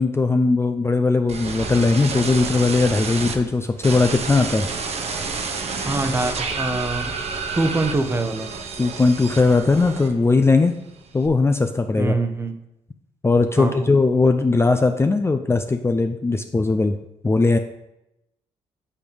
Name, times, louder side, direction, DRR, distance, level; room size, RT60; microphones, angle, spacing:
voice 1, 0.0-4.7 8.8-10.7 11.1-12.1 13.2-16.9 17.2-17.6, left 3 dB, 20° left, 6 dB, 0.5 m, -19 dB
sound 1, 1.3-3.3 3.8-10.4 10.7-11.3, right 4 dB, 55° right, 1.0 m, -29 dB
voice 2, 5.8-7.1 7.6-8.5 12.0-12.6 13.6-13.9, right 2 dB, 20° right, 7 dB, 0.9 m, -24 dB
8.5 x 3.3 x 5.2 m, 0.88 s
supercardioid pair, 60°, 13 cm